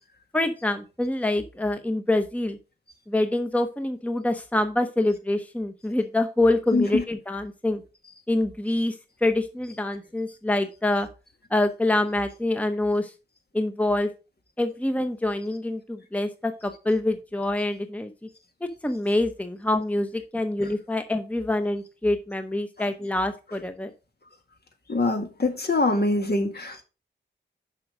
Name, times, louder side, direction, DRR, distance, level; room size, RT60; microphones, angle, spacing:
voice 1, 0.3-2.6 3.1-7.8 8.3-9.0 9.2-11.1 11.5-13.1 13.5-14.1 14.6-18.1 18.8-23.9, left 1 dB, 5° left, 0.9 m, -25 dB
voice 2, 6.7-7.0 24.9-26.8, left 2 dB, 55° left, 2.0 m, -24 dB
6.1 x 5.7 x 4.9 m
cardioid pair, 45°, 20 cm